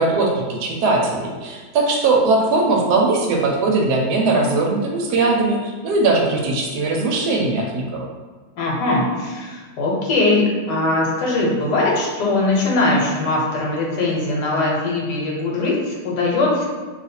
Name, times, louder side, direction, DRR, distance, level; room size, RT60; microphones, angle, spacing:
voice 1, 0.0-8.1, right 3 dB, 75° right, 0 dB, 1.1 m, -19 dB
voice 2, 8.6-16.7, left 2 dB, 75° left, -3 dB, 1.3 m, -20 dB
2.7 x 2.4 x 4.1 m, 1.4 s
omnidirectional pair, 1.8 m